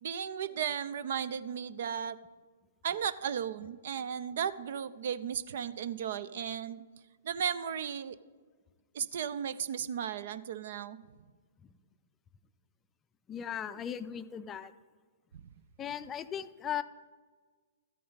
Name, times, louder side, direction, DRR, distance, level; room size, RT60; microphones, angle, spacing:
voice 1, 0.0-2.2 2.8-6.8 7.2-8.2 8.9-11.0, right 8 dB, 60° right, 16 dB, 0.5 m, -35 dB
voice 2, 13.3-14.7 15.8-16.8, left 9 dB, 20° left, 12 dB, 0.4 m, -37 dB
13.0 x 8.4 x 4.0 m, 1.5 s
figure-of-eight pair, 115°, 0 cm